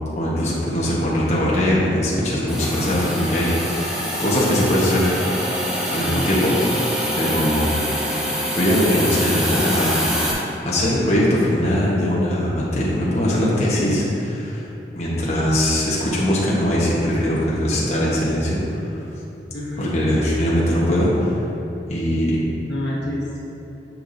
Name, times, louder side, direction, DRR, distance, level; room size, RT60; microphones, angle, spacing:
voice 1, 0.2-3.9 4.2-5.1 5.9-6.9 7.1-7.7 8.5-14.7 14.9-19.0 19.8-21.4 21.9-22.4, equal, 40° left, -7 dB, 1.1 m, -21 dB
Hiss, 2.5-10.3, equal, 5° right, 1.0 m, -25 dB
voice 2, 3.9-4.2 6.0-6.3 19.5-19.9 22.2-22.3 22.7-23.5, left 1 dB, 80° left, -5 dB, 1.4 m, -29 dB
Wind instrument woodwind instrument, 5.2-9.8, right 1 dB, 20° left, 0.6 m, -35 dB
10.0 x 5.7 x 2.7 m, 2.9 s
head